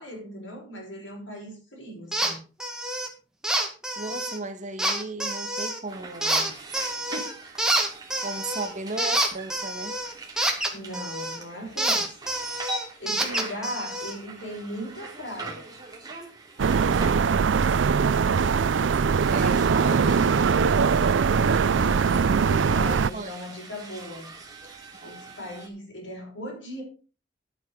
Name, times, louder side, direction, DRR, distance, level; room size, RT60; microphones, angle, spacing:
voice 1, 0.0-2.4 10.7-12.1 13.0-15.7 20.0-20.5 21.5-24.3 25.0-26.8, equal, 75° left, -1 dB, 6.5 m, -38 dB
sound 1, 2.1-2.3 2.6-3.1 3.4-4.4 4.8-5.8 6.2-7.3 7.6-11.4 11.8-14.2, right 1 dB, 5° right, 2.2 m, -27 dB
voice 2, 4.0-6.5 7.1-7.3 8.2-9.9 19.3-20.3 23.1-23.4 24.9-25.1, right 2 dB, 40° right, 7 dB, 1.9 m, -35 dB
sound 2, 5.9-25.7, right 2 dB, 20° right, 2.9 m, -43 dB
sound 3, 16.6-23.1, right 6 dB, 75° right, 0.4 m, -21 dB
11.5 x 8.8 x 4.9 m, 0.35 s
head